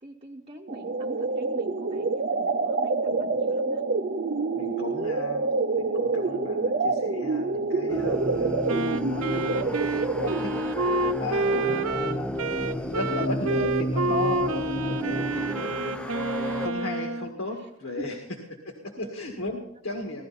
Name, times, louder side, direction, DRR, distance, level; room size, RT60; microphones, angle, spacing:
voice 1, 0.0-3.9 17.5-17.7 18.0-18.1 19.0-19.1 19.9-20.0, right 1 dB, 30° right, -1 dB, 0.9 m, -44 dB
sound 1, 0.7-10.7, right 3 dB, 45° right, 0.6 m, -27 dB
voice 2, 3.0-3.3 4.5-5.4 5.8-8.7 9.0-9.8 10.2-10.5 11.2-12.3 12.8-18.2 18.6-20.3, left 2 dB, 65° left, 1 dB, 1.9 m, -35 dB
sound 2, 7.9-16.7, equal, 5° left, 0.6 m, -32 dB
Wind instrument woodwind instrument, 8.7-17.3, right 2 dB, 85° right, 0.7 m, -29 dB
17.0 x 13.0 x 4.2 m, 0.73 s
head